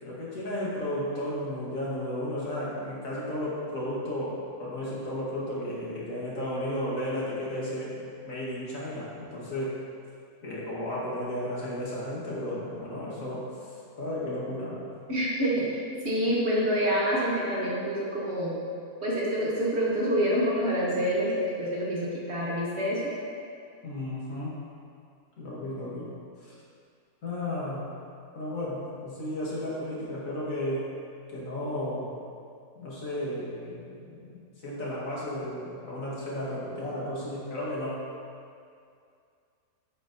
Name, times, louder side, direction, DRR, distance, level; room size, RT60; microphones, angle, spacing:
voice 1, 0.0-9.8 10.4-14.9 23.8-24.5 25.4-26.1 26.4-26.6 27.2-27.9 28.4-30.8 31.3-32.2 32.8-34.4 34.6-38.0, left 1 dB, 60° left, -7 dB, 1.8 m, -33 dB
voice 2, 15.1-15.8 16.0-18.5 19.0-23.1, equal, 50° right, -5 dB, 1.2 m, -27 dB
9.4 x 5.0 x 2.6 m, 2.4 s
omnidirectional pair, 1.6 m